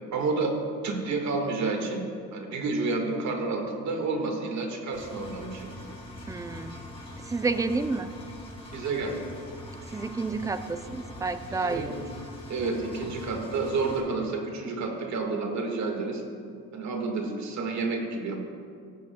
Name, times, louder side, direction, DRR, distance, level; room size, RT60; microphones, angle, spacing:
voice 1, 0.1-0.5 0.8-2.0 2.3-5.7 8.7-9.2 11.5-11.9 12.5-16.2 16.7-18.4, right 3 dB, 65° right, 2 dB, 1.7 m, -30 dB
Engine, 4.9-14.0, left 1 dB, 20° left, 2.5 m, -42 dB
voice 2, 6.3-6.7 7.3-8.1 9.9-12.0, right 3 dB, 10° right, 11 dB, 0.4 m, -30 dB
16.5 x 8.3 x 2.2 m, 2.3 s
cardioid pair, 90°, 30 cm